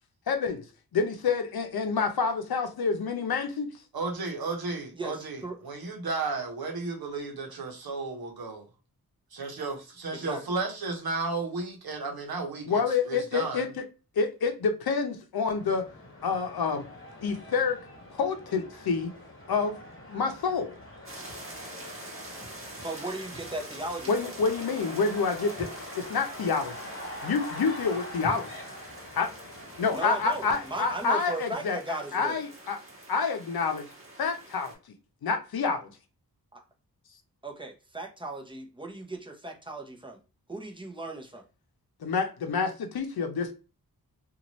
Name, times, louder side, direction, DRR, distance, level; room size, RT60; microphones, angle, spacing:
voice 1, 0.3-0.6 0.9-3.7 12.7-13.7 14.2-15.8 16.2-16.9 17.2-17.8 18.2-19.1 19.5-19.8 20.1-20.7 24.1-25.7 25.9-26.8 27.2-28.5 29.2-29.3 29.8-31.8 32.1-32.8 33.1-33.8 34.2-34.7 35.2-35.9 42.0-43.5, left 5 dB, 70° left, 0.7 m, -28 dB
voice 2, 3.9-8.7 9.3-13.6, right 3 dB, 75° right, 1.0 m, -34 dB
voice 3, 4.9-5.6 10.1-10.4 22.8-24.3 29.9-32.4 36.5-36.6 37.4-40.2 40.5-41.4, right 2 dB, 15° right, 0.8 m, -37 dB
sound 1, 15.5-31.0, left 1 dB, 35° left, 1.1 m, -44 dB
sound 2, 21.1-34.8, right 2 dB, 35° right, 1.3 m, -46 dB
2.6 x 2.5 x 3.0 m
cardioid pair, 60°, 38 cm